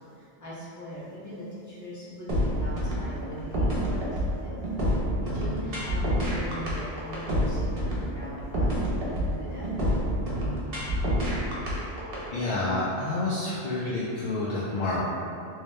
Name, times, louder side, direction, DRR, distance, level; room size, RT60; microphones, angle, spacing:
voice 1, 0.1-2.3 2.6-4.6 5.2-9.7, equal, 15° left, -10 dB, 0.9 m, -40 dB
sound 1, 2.3-12.2, equal, 55° right, 1.0 m, -27 dB
voice 2, 12.3-15.1, left 2 dB, 55° left, -6 dB, 0.5 m, -28 dB
3.2 x 3.2 x 3.1 m, 2.6 s
omnidirectional pair, 1.2 m